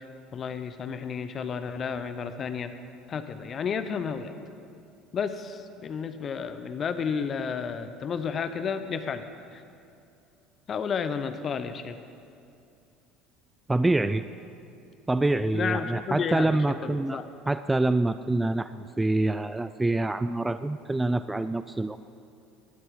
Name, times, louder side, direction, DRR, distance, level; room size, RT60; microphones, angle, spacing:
voice 1, 0.3-2.7 3.1-4.3 5.1-9.3 9.5-9.6 10.7-12.0 15.5-17.3, left 6 dB, 40° left, 10 dB, 0.9 m, -32 dB
voice 2, 13.7-14.2 15.1-17.2 17.5-22.0, right 2 dB, 10° right, 13 dB, 0.4 m, -26 dB
18.5 x 12.0 x 3.9 m, 2.6 s
figure-of-eight pair, 65°, 0 cm